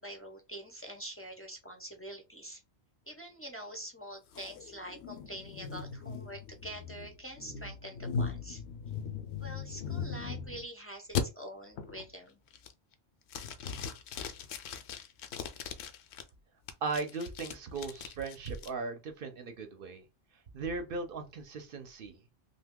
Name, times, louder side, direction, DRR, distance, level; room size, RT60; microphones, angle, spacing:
voice 1, 0.0-2.6 3.1-8.6 9.4-12.4, right 1 dB, 20° left, 0.3 m, -45 dB
sound 1, 4.3-10.7 11.2-11.3 11.8-12.1 12.5-12.9 13.3-16.2 16.7-18.7, left 6 dB, 75° left, 0.8 m, -39 dB
voice 2, 16.8-20.1 20.5-22.2, right 4 dB, 60° right, 0.7 m, -37 dB
2.7 x 2.3 x 3.5 m
omnidirectional pair, 1.1 m